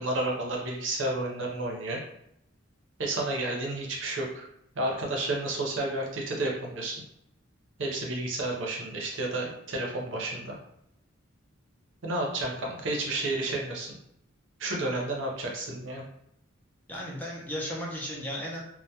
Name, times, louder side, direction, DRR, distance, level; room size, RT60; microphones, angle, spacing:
voice 1, 0.0-2.0 3.0-4.4 4.7-7.0 7.8-10.5 12.0-14.0 14.6-16.0, right 2 dB, 65° right, -1 dB, 0.6 m, -31 dB
voice 2, 16.9-18.6, equal, 10° left, -4 dB, 0.4 m, -35 dB
2.2 x 2.1 x 2.7 m, 0.76 s
head